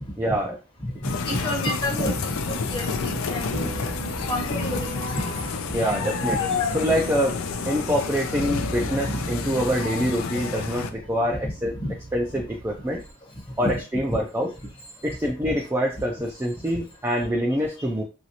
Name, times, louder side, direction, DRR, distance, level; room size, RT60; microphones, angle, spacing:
voice 1, 0.2-0.6 5.7-7.4 7.6-11.8 12.1-13.0 13.6-14.5 15.0-18.0, equal, 10° right, -1 dB, 0.4 m, -25 dB
voice 2, 0.8-3.6 4.0-5.2 5.9-6.8 11.8-11.9 13.6-13.8, equal, 25° left, -1 dB, 0.9 m, -30 dB
sound 1, 1.0-10.9, left 4 dB, 75° left, 0.4 m, -29 dB
sound 2, 3.5-13.1, right 1 dB, 50° right, 0.9 m, -38 dB
3.0 x 2.7 x 2.8 m, 0.31 s
head